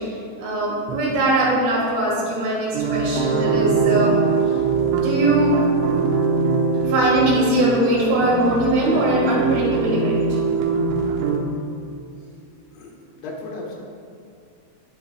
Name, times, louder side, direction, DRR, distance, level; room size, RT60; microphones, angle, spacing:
voice 1, 0.4-4.2 4.5-4.6 5.0-5.5 6.8-10.2, right 1 dB, 65° right, -5 dB, 4.6 m, -21 dB
sound 1, 2.7-11.4, right 5 dB, 85° right, 3.4 m, -22 dB
voice 2, 12.7-13.8, left 2 dB, 90° left, -1 dB, 3.9 m, -35 dB
19.5 x 7.0 x 2.3 m, 2.4 s
omnidirectional pair, 6.0 m